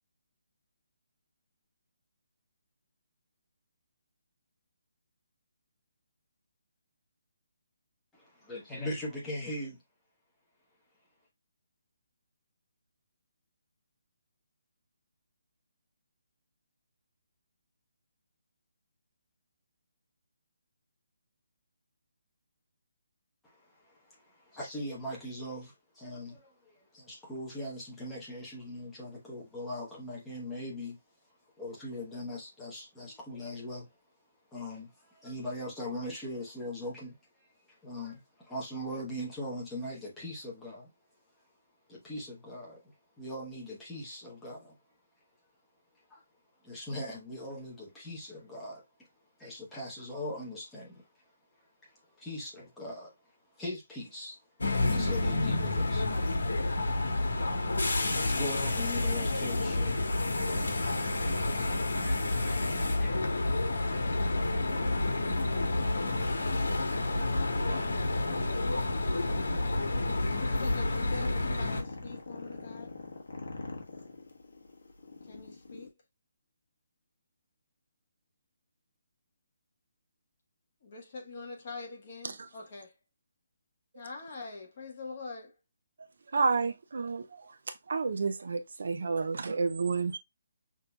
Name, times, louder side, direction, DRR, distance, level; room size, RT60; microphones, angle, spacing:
voice 1, 8.1-9.8 23.4-31.0 31.6-33.9 34.5-37.2 37.8-40.9 41.9-42.8 43.2-44.8 46.1-46.2 46.6-48.8 49.4-51.1 51.8-53.1 53.6-54.4 54.9-56.1 58.2-63.3, left 1 dB, 5° left, 0.9 m, -41 dB
sound 1, 54.6-71.8, left 2 dB, 80° left, 1.3 m, -29 dB
sound 2, 69.2-75.9, left 3 dB, 60° left, 1.2 m, -44 dB
voice 2, 70.3-72.9 75.3-75.9 80.8-82.9 83.9-85.5, left 3 dB, 30° left, 1.2 m, -44 dB
voice 3, 86.0-90.2, right 4 dB, 50° right, 0.5 m, -31 dB
5.9 x 2.7 x 2.3 m
hypercardioid pair, 180°, 0 cm